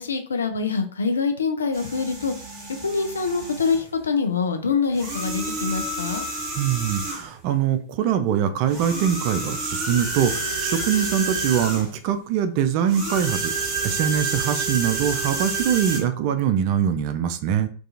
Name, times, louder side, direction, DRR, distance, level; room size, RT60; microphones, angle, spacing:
voice 1, 0.0-2.3 2.8-6.2, left 5 dB, 70° left, 6 dB, 0.3 m, -25 dB
sound 1, 1.7-3.9 4.9-7.4 8.7-12.0 12.9-16.0, right 3 dB, 25° right, 1.0 m, -29 dB
voice 2, 6.6-13.5 13.8-17.7, right 9 dB, 45° right, 9 dB, 0.3 m, -23 dB
2.4 x 2.2 x 2.7 m, 0.42 s
figure-of-eight pair, 90°, 0 cm